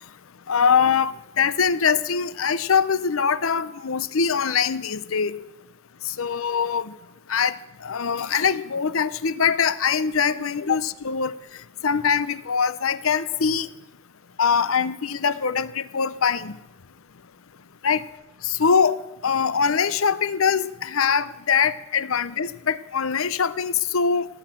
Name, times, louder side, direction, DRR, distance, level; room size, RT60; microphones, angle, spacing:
voice 1, 0.5-5.4 6.2-6.9 7.3-7.5 7.8-11.3 11.8-13.7 14.4-16.6 17.8-18.0 18.4-19.0 19.2-24.3, left 6 dB, 85° left, 16 dB, 0.7 m, -23 dB
17.5 x 8.9 x 7.6 m, 0.94 s
head